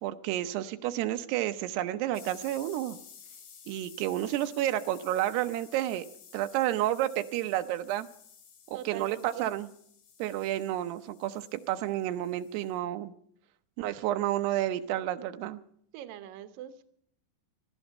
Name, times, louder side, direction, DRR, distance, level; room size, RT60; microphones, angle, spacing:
voice 1, 0.0-3.0 3.7-6.1 6.3-8.1 8.7-9.7 10.2-13.1 13.8-15.6, right 13 dB, 90° right, 9 dB, 3.0 m, -30 dB
sound 1, 2.1-12.8, left 7 dB, 60° left, 3.8 m, -54 dB
voice 2, 8.7-9.5 15.9-16.8, right 11 dB, 70° right, 10 dB, 2.6 m, -42 dB
19.0 x 14.0 x 5.4 m, 0.66 s
omnidirectional pair, 4.6 m